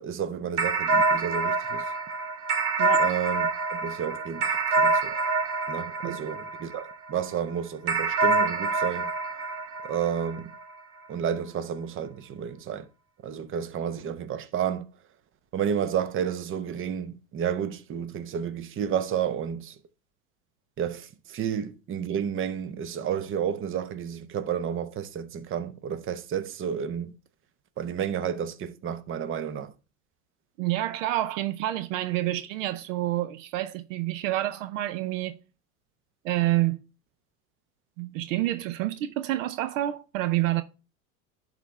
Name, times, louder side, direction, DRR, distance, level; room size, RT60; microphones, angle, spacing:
voice 1, 0.0-1.9 3.0-5.1 5.7-9.1 9.8-10.5 11.1-12.9 13.2-14.8 15.5-19.8 20.8-27.1 27.8-29.7, right 8 dB, 30° right, 0.9 m, -31 dB
sound 1, 0.6-7.2 7.9-10.6, right 3 dB, 85° right, 1.6 m, -26 dB
voice 2, 30.6-35.4 36.2-36.8 38.0-40.6, right 15 dB, 65° right, 0.7 m, -28 dB
11.5 x 4.1 x 3.3 m
hypercardioid pair, 100°, 43 cm